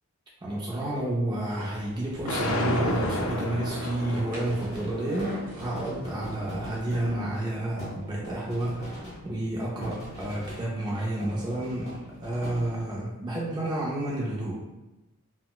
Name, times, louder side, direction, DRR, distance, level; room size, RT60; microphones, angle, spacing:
voice 1, 0.4-14.6, right 1 dB, 20° right, -5 dB, 0.4 m, -30 dB
sound 1, 1.5-6.5, equal, 35° right, 1.0 m, -46 dB
sound 2, 2.3-8.4, left 1 dB, 70° left, 0.4 m, -33 dB
sound 3, 4.4-10.9 11.2-13.1, equal, 30° left, 1.0 m, -42 dB
3.8 x 2.1 x 2.2 m, 1.0 s
head